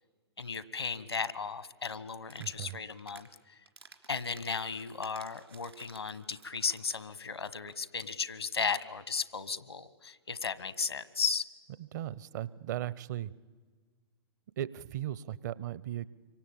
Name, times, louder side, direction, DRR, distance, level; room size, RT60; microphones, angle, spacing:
voice 1, 0.4-3.3 4.1-11.5, left 5 dB, 75° left, 16 dB, 1.3 m, -35 dB
sound 1, 2.2-3.3 3.7-7.1 7.4-7.5 7.7-7.8 8.0-8.2, right 4 dB, 75° right, 3.2 m, -55 dB
voice 2, 2.4-2.8 11.8-13.3 14.6-16.1, right 12 dB, 45° right, 20 dB, 0.8 m, -37 dB
26.0 x 24.5 x 8.7 m, 1.4 s
figure-of-eight pair, 115°, 14 cm